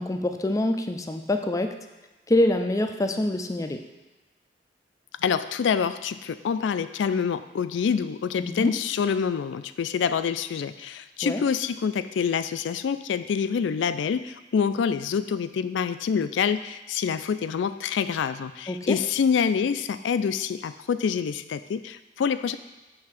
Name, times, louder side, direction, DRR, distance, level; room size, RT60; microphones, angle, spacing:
voice 1, 0.0-1.7 2.3-3.8 8.4-8.7 11.2-11.4 18.7-19.0, left 1 dB, 20° left, 6 dB, 0.4 m, -25 dB
voice 2, 5.2-22.6, left 6 dB, 90° left, 12 dB, 0.3 m, -26 dB
6.6 x 3.5 x 5.8 m, 1.1 s
head